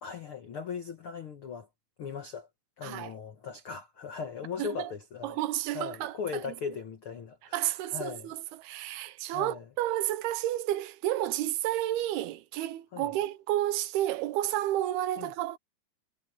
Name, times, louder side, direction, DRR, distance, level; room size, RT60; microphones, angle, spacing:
voice 1, 0.0-1.7 2.0-2.5 2.8-5.4 5.7-8.3 9.3-9.6 12.9-13.1 15.2-15.3, left 6 dB, 85° left, 1.1 m, -39 dB
voice 2, 2.8-3.1 4.6-4.9 5.2-6.6 7.5-15.6, right 14 dB, 80° right, 2.7 m, -31 dB
omnidirectional pair, 4.7 m